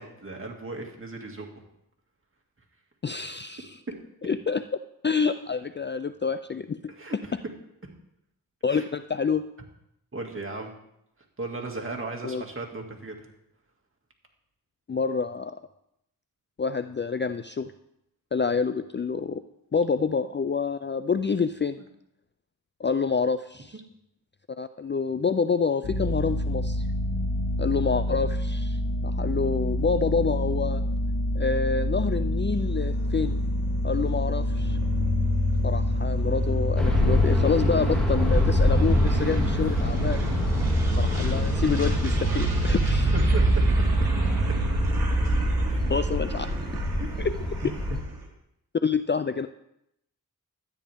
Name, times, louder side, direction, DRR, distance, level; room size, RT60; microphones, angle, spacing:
voice 1, 0.0-1.5 7.0-7.2 8.7-8.8 10.1-10.7 11.4-13.2 43.1-43.6 45.7-45.9 47.0-47.1, right 2 dB, 35° right, 1 dB, 2.3 m, -36 dB
voice 2, 3.0-3.8 4.2-4.6 5.0-6.9 8.6-9.4 12.2-12.4 14.9-15.5 16.6-17.7 18.3-19.4 19.7-21.8 22.8-23.8 24.6-26.8 27.6-30.8 31.3-33.4 33.8-34.8 35.6-40.2 41.0-43.1 45.9-46.5 47.2-47.3 48.8-49.5, left 5 dB, 30° left, 11 dB, 0.4 m, -27 dB
sound 1, 25.8-45.5, left 1 dB, 85° left, 2.0 m, -28 dB
sound 2, 32.6-48.2, right 1 dB, 70° right, 2.8 m, -27 dB
sound 3, 36.8-48.0, left 1 dB, ahead, 3.4 m, -27 dB
12.5 x 9.8 x 3.6 m, 0.79 s
cardioid pair, 50°, 37 cm